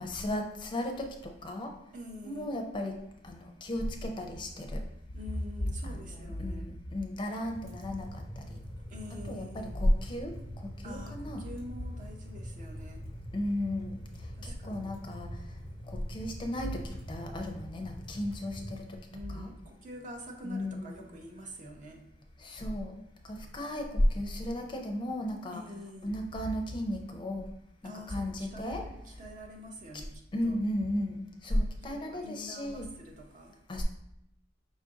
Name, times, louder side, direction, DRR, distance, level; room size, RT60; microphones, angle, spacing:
voice 1, 0.0-1.7 2.2-3.0 3.2-4.8 5.8-8.2 8.5-8.6 9.3-10.3 10.8-11.4 13.3-14.0 14.4-15.3 15.9-19.0 19.3-19.5 20.4-21.0 22.4-22.9 23.3-25.6 26.0-27.5 28.1-28.8 30.3-32.9 33.7-33.8, left 1 dB, 25° left, 3 dB, 0.5 m, -33 dB
voice 2, 1.9-2.6 5.1-6.7 8.9-9.8 10.8-13.1 14.4-14.9 19.1-22.0 25.5-26.2 27.8-30.6 31.5-33.6, left 1 dB, 45° right, 2 dB, 0.6 m, -46 dB
sound 1, 7.5-18.7, equal, 85° right, 1.7 m, -44 dB
5.2 x 2.5 x 3.7 m, 0.84 s
head